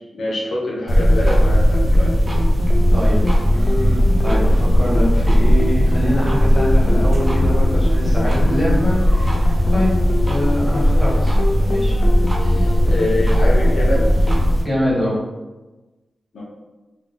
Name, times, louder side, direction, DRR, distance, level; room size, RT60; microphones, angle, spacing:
voice 1, 0.1-2.1 12.4-14.0 16.3-16.4, left 1 dB, 85° left, -4 dB, 1.0 m, -25 dB
sound 1, 0.9-14.6, left 2 dB, 50° left, 0.4 m, -26 dB
sound 2, 0.9-14.6, equal, 15° right, 0.7 m, -17 dB
voice 2, 2.9-9.9 10.3-11.4 11.7-11.9 14.6-15.1, equal, 5° left, -8 dB, 1.4 m, -24 dB
3.6 x 2.9 x 3.7 m, 1.1 s
wide cardioid pair, 170°, 0 cm